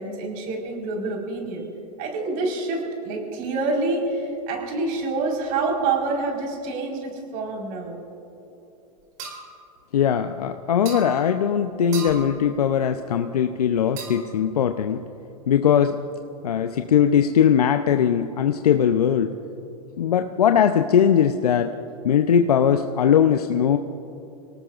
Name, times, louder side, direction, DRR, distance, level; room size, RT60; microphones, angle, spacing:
voice 1, 0.0-1.6 2.0-8.0, right 3 dB, 50° right, 0 dB, 4.6 m, -27 dB
sound 1, 9.2-9.4 10.9-11.1 11.9-12.3 14.0-14.3, right 5 dB, 70° right, 4.3 m, -34 dB
voice 2, 9.9-15.0 15.5-16.0 16.4-19.4 20.0-21.8 22.0-23.8, left 8 dB, 90° left, 7 dB, 0.7 m, -20 dB
28.5 x 18.5 x 2.5 m, 3.0 s
hypercardioid pair, 110°, 19 cm